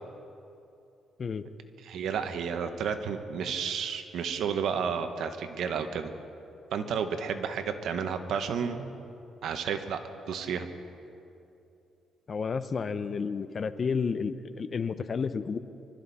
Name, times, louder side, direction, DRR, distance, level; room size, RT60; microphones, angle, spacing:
voice 1, 1.8-6.1 6.7-8.9 9.4-10.0 10.3-10.7, right 7 dB, 75° right, 7 dB, 1.2 m, -31 dB
voice 2, 12.3-15.6, left 5 dB, 45° left, 12 dB, 0.7 m, -31 dB
24.5 x 13.0 x 4.2 m, 2.7 s
cardioid pair, 90°, 0 cm